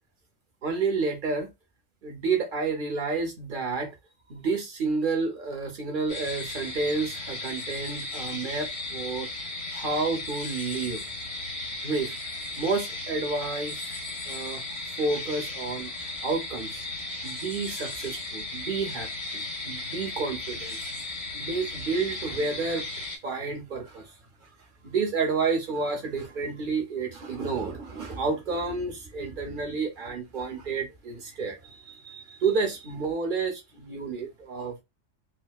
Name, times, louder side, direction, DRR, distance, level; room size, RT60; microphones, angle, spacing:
voice 1, 0.6-1.5 2.0-4.0 4.3-9.3 9.7-11.0 11.8-12.1 12.6-14.0 14.3-14.6 15.0-15.9 16.2-16.8 17.2-20.8 21.3-22.8 23.2-24.1 24.4-24.5 24.8-34.8, right 4 dB, 45° right, 0.9 m, -30 dB
sound 1, 6.1-23.2, left 2 dB, 70° left, 1.6 m, -36 dB
4.2 x 2.1 x 2.3 m
omnidirectional pair, 1.2 m